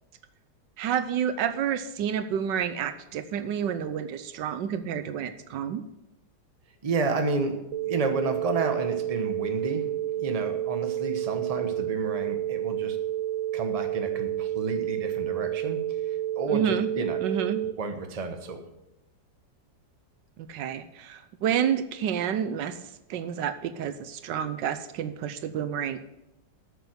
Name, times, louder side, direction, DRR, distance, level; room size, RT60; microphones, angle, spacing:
voice 1, 0.8-5.8 16.5-16.9 17.2-17.6 20.5-22.7 23.1-26.1, right 8 dB, 80° right, 11 dB, 1.3 m, -29 dB
voice 2, 6.8-13.0 13.5-17.2 17.8-18.6, right 3 dB, 25° right, 6 dB, 0.9 m, -31 dB
sound 1, 7.7-17.7, right 12 dB, 60° right, 0.8 m, -30 dB
8.8 x 6.8 x 8.0 m, 0.89 s
omnidirectional pair, 2.0 m